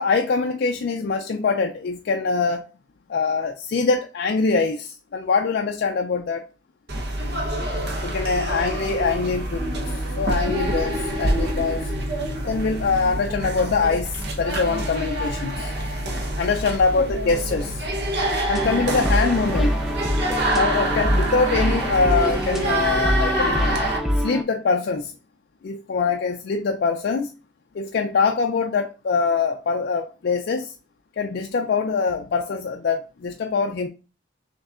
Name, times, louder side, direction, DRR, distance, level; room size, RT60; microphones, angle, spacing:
voice 1, 0.0-2.7 3.1-6.5 8.0-9.8 10.2-11.8 12.5-15.7 16.4-17.8 18.5-19.8 20.5-23.7 24.2-25.1 25.6-27.3 27.7-30.7 31.2-33.9, left 4 dB, 55° left, 0.4 m, -23 dB
sound 1, 6.9-24.0, right 1 dB, 55° right, 0.9 m, -26 dB
sound 2, 18.5-24.4, equal, ahead, 0.5 m, -25 dB
6.2 x 3.2 x 2.4 m
head